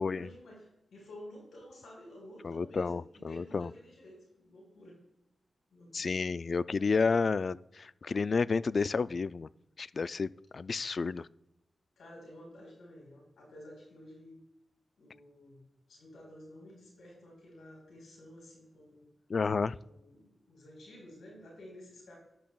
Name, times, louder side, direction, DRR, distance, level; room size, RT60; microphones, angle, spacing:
voice 1, 0.0-5.0 5.7-6.2 12.0-14.4 15.0-15.6 15.9-19.1 19.8-22.2, left 1 dB, 90° left, 0 dB, 4.3 m, -52 dB
voice 2, 2.4-3.7 5.9-9.5 9.8-11.3 19.3-19.8, left 4 dB, 60° left, 17 dB, 0.3 m, -31 dB
13.5 x 10.5 x 2.3 m, 0.86 s
cardioid pair, 50°, 0 cm